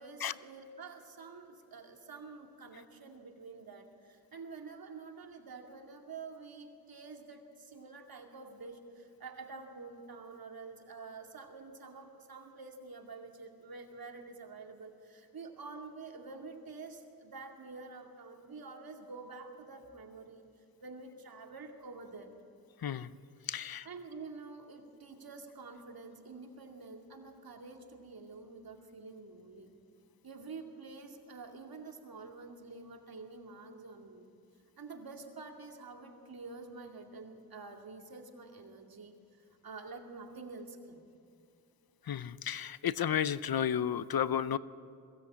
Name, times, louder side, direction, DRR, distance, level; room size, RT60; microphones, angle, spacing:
voice 1, 0.0-20.4 20.8-22.3 23.8-29.7 30.2-34.3 34.8-41.0, right 4 dB, 75° right, 4 dB, 2.4 m, -48 dB
voice 2, 23.5-23.9 42.1-44.6, left 9 dB, 75° left, 16 dB, 0.7 m, -32 dB
21.5 x 16.5 x 8.7 m, 2.4 s
cardioid pair, 55°, 36 cm